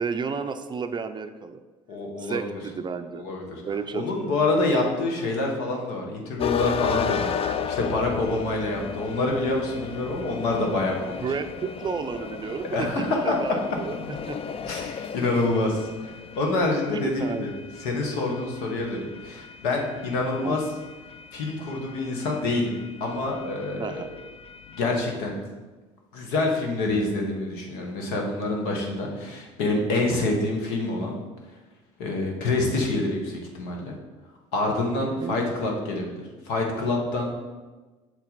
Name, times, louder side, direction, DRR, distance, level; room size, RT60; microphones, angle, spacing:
voice 1, 0.0-1.6 2.2-3.2 3.6-4.3 11.2-14.4 16.9-17.5 20.4-20.6 23.8-24.1 35.0-35.4, right 5 dB, 30° right, 9 dB, 0.5 m, -32 dB
voice 2, 1.9-2.4 3.1-3.6 3.9-11.2 12.7-13.4 14.7-15.9 16.3-17.5 17.8-20.6 21.3-24.1 24.7-25.3 26.1-31.1 32.0-33.9 34.5-37.3, left 2 dB, 75° left, 1 dB, 1.4 m, -27 dB
sound 1, 6.4-25.0, left 7 dB, 35° left, 0.4 m, -35 dB
6.7 x 4.2 x 4.1 m, 1.2 s
hypercardioid pair, 75°, 16 cm